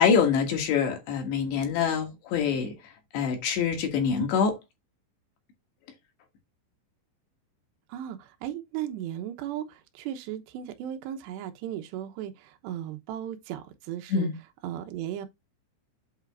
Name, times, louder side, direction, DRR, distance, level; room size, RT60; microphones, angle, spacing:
voice 1, 0.0-2.7 3.1-4.6 14.1-14.3, left 6 dB, 65° left, 3.4 m, -25 dB
voice 2, 7.9-14.3 14.6-15.3, right 11 dB, 75° right, 2.7 m, -36 dB
8.4 x 3.6 x 4.6 m
omnidirectional pair, 5.8 m